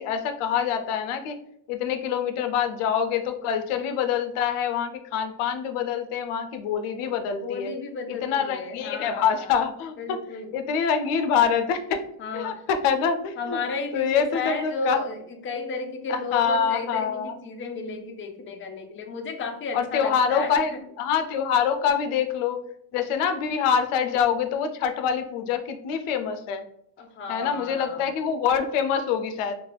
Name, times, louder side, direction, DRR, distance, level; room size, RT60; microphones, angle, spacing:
voice 1, 0.0-1.4 1.7-7.7 8.1-12.0 12.3-13.6 13.9-15.0 16.1-17.4 19.7-22.6 22.9-26.6 27.3-29.5, left 7 dB, 85° left, 8 dB, 0.5 m, -25 dB
voice 2, 7.4-9.5 10.0-10.5 12.2-12.6 13.4-20.8 27.0-28.0, left 3 dB, 25° left, 4 dB, 0.4 m, -33 dB
2.5 x 2.3 x 3.2 m, 0.72 s
cardioid pair, 90°, 49 cm